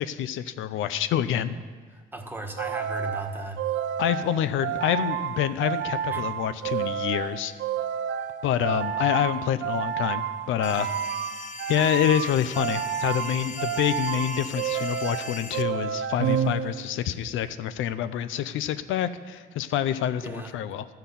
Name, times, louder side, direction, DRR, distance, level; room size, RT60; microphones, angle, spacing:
voice 1, 0.0-1.6 4.0-7.5 8.4-10.9 11.7-20.9, left 10 dB, 85° left, 13 dB, 0.5 m, -27 dB
voice 2, 1.9-3.6 6.1-6.2 20.2-20.5, right 2 dB, 10° right, 3 dB, 1.4 m, -36 dB
sound 1, 2.6-17.1, right 9 dB, 70° right, 0.6 m, -30 dB
sound 2, 10.6-15.6, left 5 dB, 40° left, 0.6 m, -39 dB
13.0 x 5.8 x 7.0 m, 1.5 s
cardioid pair, 90°, 20 cm